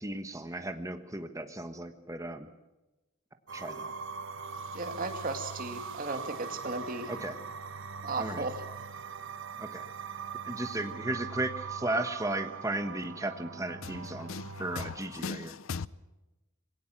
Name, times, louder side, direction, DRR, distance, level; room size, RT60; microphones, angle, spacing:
voice 1, 0.0-2.5 3.5-3.9 7.1-7.4 8.2-8.4 9.6-9.8 10.4-14.3 14.6-15.5, right 1 dB, 15° right, 1.3 m, -35 dB
sound 1, 3.5-15.0, right 5 dB, 60° right, 1.0 m, -41 dB
voice 2, 4.7-7.1 8.0-8.6, right 3 dB, 40° right, 2.4 m, -35 dB
voice 3, 13.8-15.9, left 5 dB, 65° left, 0.6 m, -39 dB
20.5 x 18.0 x 7.3 m
head